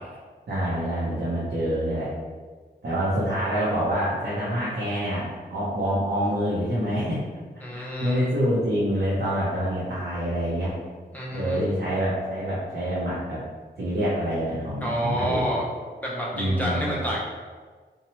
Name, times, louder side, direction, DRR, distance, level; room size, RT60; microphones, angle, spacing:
voice 1, 0.5-2.1 2.8-7.2 7.7-10.8 11.3-13.4 13.8-15.5 16.3-17.0, equal, 65° right, -8 dB, 0.7 m, -26 dB
voice 2, 7.6-8.3 11.1-11.6 14.8-15.6 16.0-17.2, equal, 10° left, -5 dB, 0.6 m, -28 dB
2.8 x 2.2 x 2.9 m, 1.5 s
wide cardioid pair, 105°, 18 cm